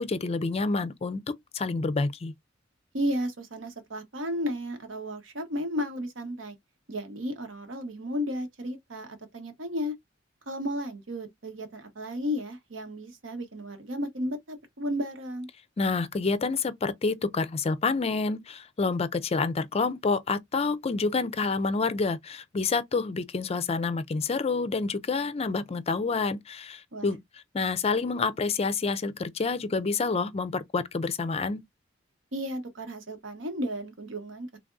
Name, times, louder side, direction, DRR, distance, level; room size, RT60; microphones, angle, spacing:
voice 1, 0.0-2.3 15.8-27.2 27.5-31.6, left 4 dB, 30° left, 0.4 m, -28 dB
voice 2, 2.9-6.5 6.9-9.9 10.5-15.5 26.9-27.1 32.3-34.6, equal, 75° right, 1.1 m, -33 dB
3.5 x 3.4 x 2.5 m
head